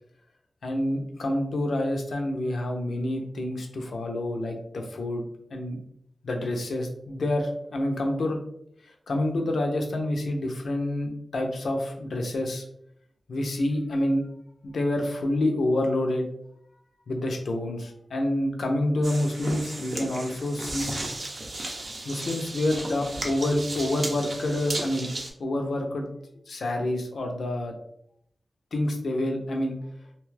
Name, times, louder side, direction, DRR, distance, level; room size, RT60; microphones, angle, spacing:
voice 1, 0.6-5.8 6.2-8.4 8.8-12.6 13.3-14.3 14.6-16.3 17.1-21.0 22.0-25.1 25.4-26.1 26.5-27.7 28.7-29.8, left 1 dB, 85° left, 3 dB, 0.5 m, -28 dB
sound 1, 19.0-25.3, right 2 dB, 55° right, 0.6 m, -35 dB
2.8 x 2.3 x 3.2 m, 0.72 s
wide cardioid pair, 105°, 0 cm